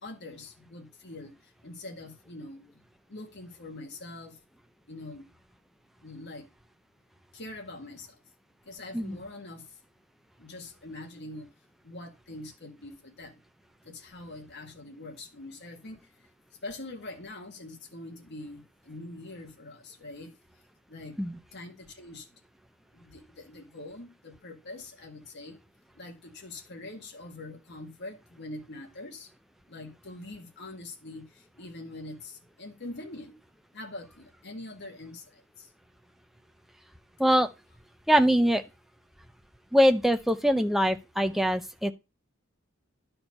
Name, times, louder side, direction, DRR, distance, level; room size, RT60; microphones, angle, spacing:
voice 1, 0.0-1.3 1.6-2.7 3.1-4.4 4.9-5.3 6.0-6.5 7.3-8.2 8.7-9.6 10.4-11.5 11.8-13.4 13.9-16.0 16.6-20.3 20.9-21.2 21.5-22.3 22.9-25.6 26.0-29.3 29.7-33.4 33.7-35.4, left 2 dB, 55° left, 1.7 m, -43 dB
voice 2, 38.1-38.6 39.7-41.9, equal, ahead, 0.5 m, -23 dB
11.0 x 4.5 x 5.3 m
head